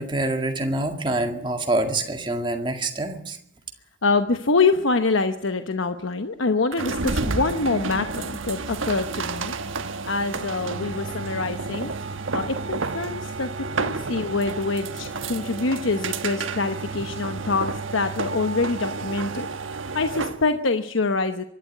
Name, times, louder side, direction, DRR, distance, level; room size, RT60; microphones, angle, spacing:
voice 1, 0.0-3.4 13.8-13.9, right 2 dB, 25° right, 4 dB, 2.1 m, -26 dB
voice 2, 4.0-9.5 10.1-11.9 12.3-21.4, left 3 dB, 80° left, 8 dB, 1.0 m, -25 dB
sound 1, 6.7-20.4, right 4 dB, 85° right, 1.3 m, -31 dB
24.0 x 12.0 x 9.4 m, 0.75 s
head